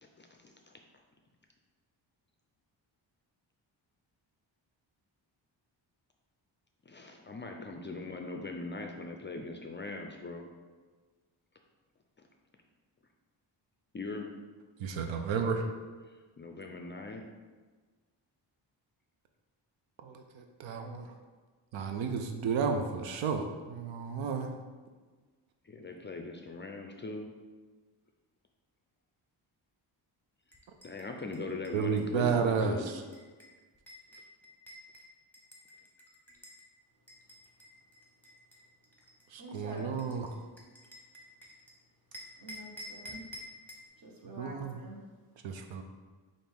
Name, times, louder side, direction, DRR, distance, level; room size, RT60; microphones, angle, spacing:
voice 1, 0.0-0.8 6.9-10.5 13.9-14.3 16.0-17.2 25.6-27.3 30.8-32.9 34.1-34.2, left 3 dB, 25° left, 3 dB, 0.4 m, -41 dB
voice 2, 14.8-15.7 20.0-21.1 21.7-24.5 31.7-32.9 39.3-40.4 44.4-44.8 45.4-45.8, right 5 dB, 85° right, 5 dB, 0.6 m, -32 dB
sound 1, 30.5-36.7 37.1-41.7 42.1-43.9, left 1 dB, 5° left, 0.8 m, -51 dB
voice 3, 39.4-40.1 42.4-43.3 44.0-45.0, right 1 dB, 50° right, 0 dB, 1.1 m, -47 dB
5.9 x 2.6 x 3.5 m, 1.4 s
cardioid pair, 80°, 45 cm